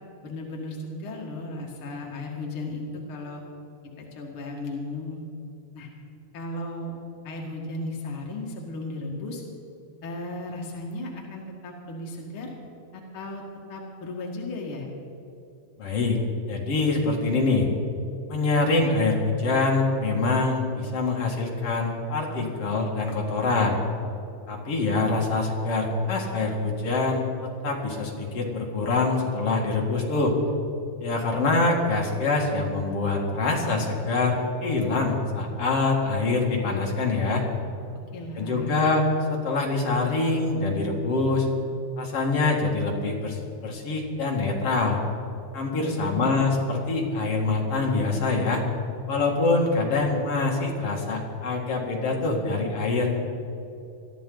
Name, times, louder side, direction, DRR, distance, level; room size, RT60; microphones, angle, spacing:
voice 1, 0.2-3.4 4.0-5.2 5.7-5.9 6.3-6.9 7.2-9.4 10.0-12.5 12.9-13.4 13.7-14.9 38.1-38.7 45.8-46.4, left 2 dB, 65° left, -1 dB, 1.3 m, -35 dB
voice 2, 15.8-16.2 16.5-17.7 18.3-23.8 24.5-30.4 31.0-37.4 38.4-41.5 42.0-45.0 45.5-48.6 49.1-53.1, left 3 dB, 50° left, -1 dB, 1.8 m, -25 dB
22.5 x 14.0 x 3.9 m, 2.7 s
omnidirectional pair, 5.5 m